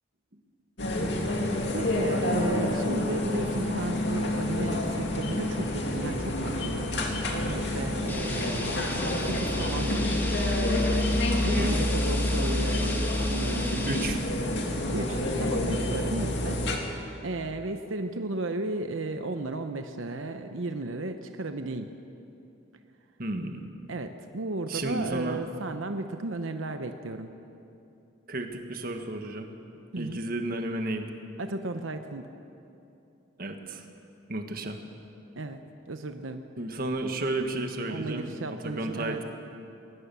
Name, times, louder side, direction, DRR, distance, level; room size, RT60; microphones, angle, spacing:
sound 1, 0.8-16.8, left 1 dB, 60° left, 2.5 m, -28 dB
voice 1, 1.7-8.8 9.3-10.2 11.4-14.1 14.6-16.6 16.9-21.9 23.9-27.3 29.9-30.2 31.4-32.3 35.4-35.6 35.9-36.5 37.9-39.2, right 2 dB, 90° right, 7 dB, 0.9 m, -34 dB
sound 2, 8.1-14.1, left 1 dB, 10° left, 1.8 m, -37 dB
voice 2, 13.9-14.2 23.2-23.6 24.7-25.4 28.3-29.5 29.9-31.1 33.4-33.9 34.3-34.8 36.6-38.3 38.6-39.2, right 2 dB, 50° right, 5 dB, 1.6 m, -32 dB
21.0 x 19.5 x 7.0 m, 2.8 s
head